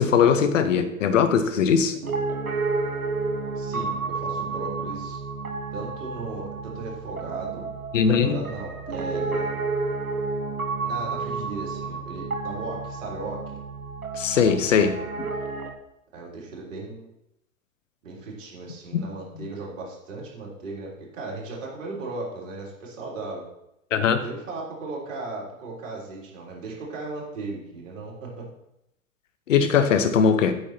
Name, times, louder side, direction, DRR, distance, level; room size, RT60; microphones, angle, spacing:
voice 1, 0.0-2.0 7.9-8.4 14.1-15.3 18.9-19.0 23.9-24.2 29.5-30.5, left 7 dB, 60° left, 9 dB, 1.2 m, -20 dB
Piano, 2.0-15.7, right 4 dB, 90° right, 1.0 m, -31 dB
voice 2, 3.6-5.2 5.7-7.7 8.2-9.5 10.8-13.6 14.5-14.6 16.1-17.1 18.0-23.5 24.1-28.5, right 3 dB, 60° right, -3 dB, 3.6 m, -36 dB
8.8 x 6.6 x 4.4 m, 0.82 s
figure-of-eight pair, 100°, 42 cm